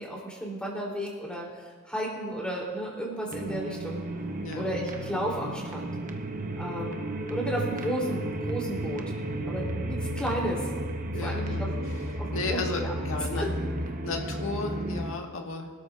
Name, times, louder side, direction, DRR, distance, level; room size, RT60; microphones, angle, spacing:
voice 1, 0.0-1.5 1.9-4.0 4.5-5.9 6.6-9.0 9.5-10.7 11.2-11.7 12.2-12.9 13.4-13.5, right 1 dB, 5° left, -3 dB, 3.7 m, -33 dB
sound 1, 3.3-15.2, right 1 dB, 40° right, 1.0 m, -33 dB
voice 2, 4.4-4.8 11.1-11.7 12.3-13.5 14.0-15.7, left 3 dB, 80° left, 1 dB, 1.8 m, -34 dB
25.5 x 12.5 x 2.6 m, 1.5 s
head